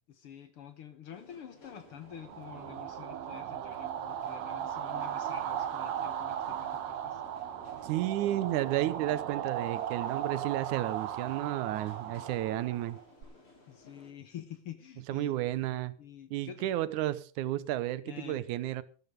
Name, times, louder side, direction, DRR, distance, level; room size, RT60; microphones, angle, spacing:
voice 1, 0.1-7.2 13.7-15.3 16.0-16.7 18.0-18.5, left 9 dB, 60° left, 1.6 m, -48 dB
sound 1, 1.1-14.1, left 2 dB, 45° left, 4.4 m, -58 dB
sound 2, 2.1-13.2, right 10 dB, 70° right, 2.2 m, -37 dB
voice 2, 7.8-13.0 15.1-15.9 16.3-18.8, right 14 dB, 90° right, 2.3 m, -32 dB
13.0 x 12.5 x 5.2 m
omnidirectional pair, 3.4 m